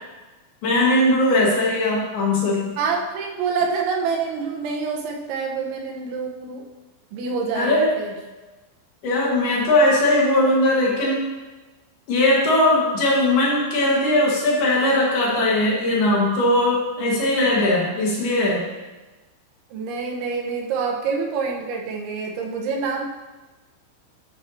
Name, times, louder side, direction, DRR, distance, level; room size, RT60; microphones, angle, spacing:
voice 1, 0.6-2.7 7.5-8.0 9.0-11.3 12.1-18.7, left 1 dB, 60° left, -4 dB, 3.1 m, -19 dB
voice 2, 2.8-6.6 7.1-8.1 12.8-12.9 19.7-23.0, right 5 dB, 75° right, 0 dB, 3.2 m, -26 dB
11.5 x 9.7 x 2.8 m, 1.2 s
omnidirectional pair, 5.9 m